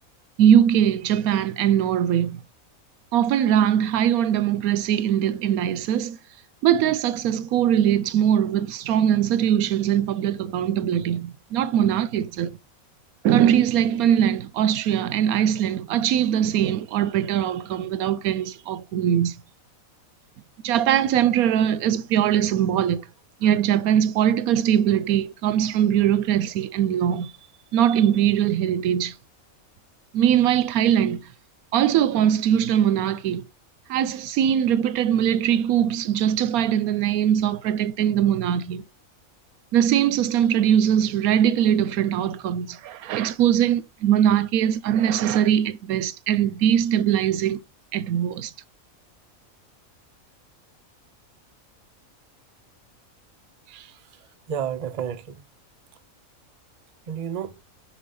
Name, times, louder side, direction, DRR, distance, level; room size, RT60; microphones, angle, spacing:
voice 1, 0.4-2.4 3.1-6.2 6.6-12.6 13.2-19.4 20.6-23.0 23.4-27.3 27.7-29.1 30.1-31.2 31.7-33.5 33.9-38.8 39.7-47.6 47.9-48.5, right 10 dB, 90° right, 1.1 m, -21 dB
voice 2, 53.7-55.4 57.1-57.6, right 8 dB, 45° right, 0.5 m, -32 dB
5.2 x 5.1 x 5.4 m
omnidirectional pair, 1.5 m